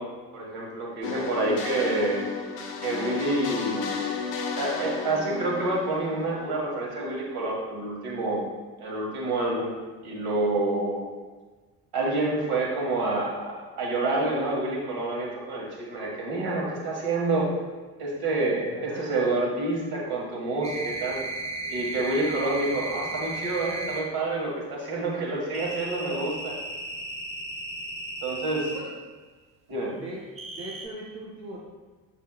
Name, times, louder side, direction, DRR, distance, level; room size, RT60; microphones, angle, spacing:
voice 1, 0.0-2.2 2.8-4.1 4.6-8.4 8.8-9.8 10.0-11.1 11.9-17.5 18.0-21.2 21.7-26.6 28.2-28.7 29.7-29.9, right 2 dB, 50° right, -3 dB, 2.0 m, -28 dB
sound 1, 1.0-6.8, left 5 dB, 75° left, 0.9 m, -33 dB
voice 2, 18.6-19.1 28.7-28.9 29.9-30.2 30.5-31.6, right 2 dB, 90° right, -5 dB, 0.8 m, -40 dB
sound 2, 20.6-24.1 25.5-28.8 30.4-30.9, right 2 dB, 15° right, 1.0 m, -35 dB
8.0 x 6.1 x 2.4 m, 1.4 s
figure-of-eight pair, 50°, 50 cm